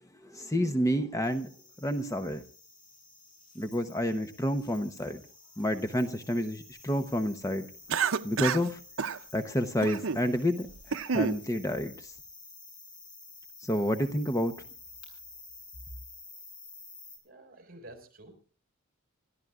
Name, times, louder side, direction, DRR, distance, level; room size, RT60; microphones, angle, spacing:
voice 1, 0.3-1.5 1.8-2.4 3.5-5.2 5.6-7.7 8.2-8.8 9.3-12.1 13.6-14.5, equal, 15° left, 8 dB, 0.9 m, -29 dB
sound 1, 1.2-17.2, left 3 dB, 40° left, 7.9 m, -51 dB
Cough, 7.9-8.7 9.0-9.2 9.8-10.2 10.7-11.4, right 6 dB, 70° right, 0.7 m, -29 dB
voice 2, 17.2-18.5, right 1 dB, 45° right, 5 dB, 5.1 m, -50 dB
28.0 x 13.5 x 2.5 m, 0.37 s
head